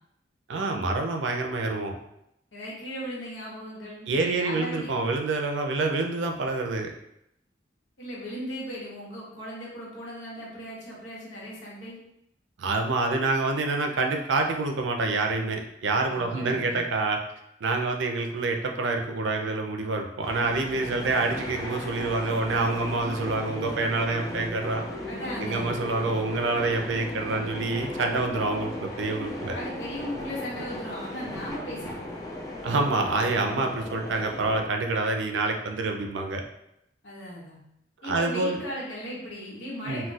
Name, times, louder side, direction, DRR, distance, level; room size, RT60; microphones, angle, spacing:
voice 1, 0.5-2.0 4.1-6.9 12.6-17.2 17.6-24.8 25.4-29.6 32.6-36.4 38.0-38.6 39.8-40.0, right 3 dB, 85° right, 3 dB, 0.4 m, -27 dB
voice 2, 2.5-4.9 8.0-12.0 16.1-16.8 25.0-25.7 29.5-32.1 37.0-37.6 38.0-40.1, equal, 85° left, -5 dB, 1.0 m, -37 dB
sound 1, 20.2-34.6, left 1 dB, 20° left, 0.4 m, -36 dB
2.3 x 2.2 x 3.9 m, 0.80 s
head